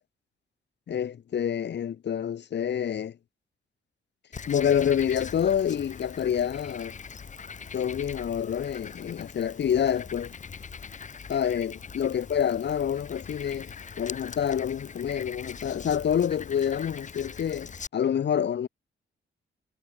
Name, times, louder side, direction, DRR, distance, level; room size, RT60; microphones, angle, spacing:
voice 1, 0.9-3.2 4.5-6.9 7.7-10.3 11.3-18.7, left 9 dB, 55° left, 1.2 m, -27 dB
Frog, 4.3-17.9, left 6 dB, 35° left, 1.1 m, -42 dB
cardioid pair, 115°, 21 cm